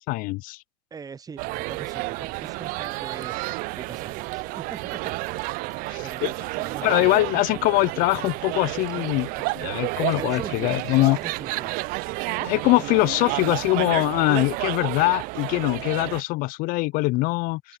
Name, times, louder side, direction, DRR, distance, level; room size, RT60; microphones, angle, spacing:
voice 1, 0.1-0.6 5.9-6.3 6.8-9.3 9.5-11.2 12.4-17.6, left 22 dB, 50° left, 0.4 m, -23 dB
voice 2, 0.9-3.3 3.8-5.0 6.0-7.2 10.2-11.8, right 6 dB, 20° right, 0.8 m, -41 dB
sound 1, 1.4-16.2, right 23 dB, 50° right, 0.5 m, -31 dB
sound 2, 4.1-13.7 14.3-16.3, left 4 dB, 15° left, 7.7 m, -61 dB
hypercardioid pair, 100°, 19 cm